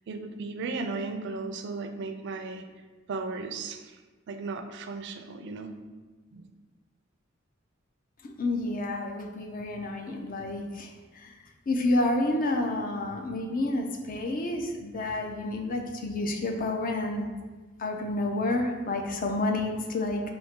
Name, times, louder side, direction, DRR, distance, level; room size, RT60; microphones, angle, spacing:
voice 1, 0.1-2.7 3.1-4.0 4.3-5.8 6.3-6.5, right 3 dB, 60° right, 6 dB, 0.4 m, -35 dB
voice 2, 8.2-10.9 11.2-11.3 11.7-17.3 17.8-20.2, left 2 dB, 45° left, 3 dB, 0.5 m, -29 dB
4.2 x 2.8 x 3.6 m, 1.3 s
head